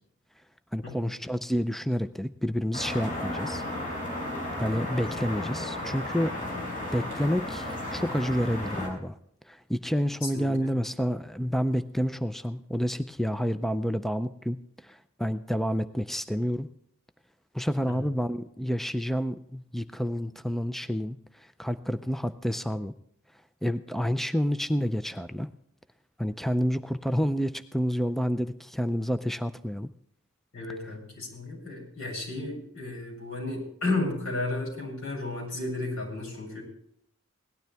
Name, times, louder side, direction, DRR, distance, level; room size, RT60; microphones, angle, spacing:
voice 1, 0.7-3.6 4.6-9.2 9.5-16.7 17.5-22.9 23.6-25.5 26.2-29.9, equal, ahead, 11 dB, 0.4 m, -29 dB
sound 1, 2.7-8.9, left 1 dB, 40° left, 5.3 m, -34 dB
voice 2, 30.5-36.6, left 2 dB, 80° left, -3 dB, 7.1 m, -33 dB
18.0 x 12.0 x 3.4 m, 0.71 s
head